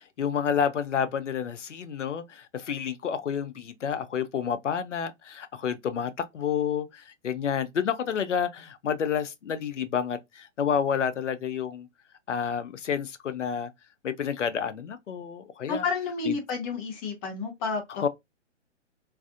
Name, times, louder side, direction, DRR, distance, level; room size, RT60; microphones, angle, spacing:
voice 1, 0.0-11.9 12.3-13.7 14.0-15.8 16.3-16.4 18.0-18.1, left 7 dB, 75° left, 0.6 m, -29 dB
voice 2, 15.7-18.0, left 4 dB, 30° left, 1.1 m, -30 dB
3.3 x 2.4 x 2.4 m
figure-of-eight pair, 120°, 36 cm